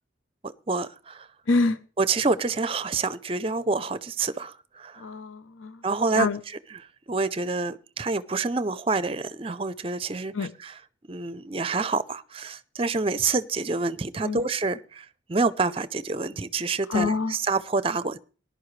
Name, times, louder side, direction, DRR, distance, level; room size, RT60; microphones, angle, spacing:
voice 1, 0.4-1.3 2.0-5.1 5.8-6.3 7.1-10.3 10.6-10.7 11.1-18.2, right 4 dB, 30° right, 0.5 m, -27 dB
voice 2, 1.5-1.8 5.0-5.8 6.1-6.4 10.3-10.5 14.2-14.4 16.9-17.3, left 3 dB, 80° left, 0.8 m, -26 dB
19.0 x 11.0 x 3.2 m
head